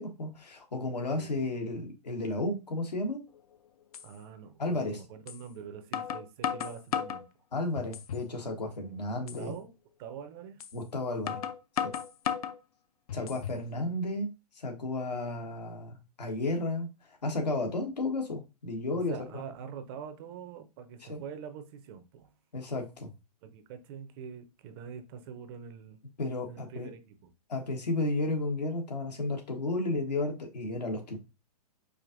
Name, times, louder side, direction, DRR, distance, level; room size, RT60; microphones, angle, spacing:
voice 1, 0.0-3.2 4.6-5.0 7.5-9.5 10.7-11.4 11.8-11.9 13.1-14.3 14.5-16.9 17.2-19.4 21.1-21.2 22.5-23.1 26.2-26.9 27.5-31.2, left 2 dB, 85° left, 1.2 m, -33 dB
sound 1, 3.3-3.4 3.9-4.1 5.3-5.4 5.9-7.2 7.8-8.3 8.7-8.8 9.3-9.4 10.6-10.7 11.3-12.6 13.1-13.6, left 8 dB, 65° left, 0.5 m, -34 dB
voice 2, 4.0-7.3 9.4-9.7 10.0-10.6 13.1-13.3 19.1-22.3 23.4-26.0 26.5-27.3, right 7 dB, 35° right, 0.6 m, -44 dB
5.0 x 2.5 x 2.5 m
hypercardioid pair, 125°, 20 cm